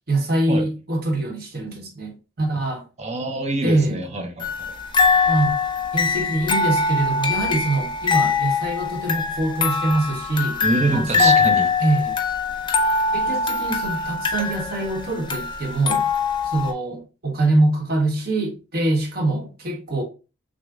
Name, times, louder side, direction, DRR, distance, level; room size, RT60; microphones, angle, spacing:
voice 1, 0.1-2.8 3.6-4.0 5.3-5.6 5.9-10.6 10.9-11.4 11.8-12.2 13.1-16.1 16.4-20.0, right 2 dB, 50° right, 1.1 m, -24 dB
voice 2, 3.0-4.7 10.6-11.7, right 2 dB, 35° right, 0.6 m, -25 dB
sound 1, 4.4-16.7, left 4 dB, 25° left, 0.4 m, -22 dB
6.1 x 2.1 x 2.4 m
head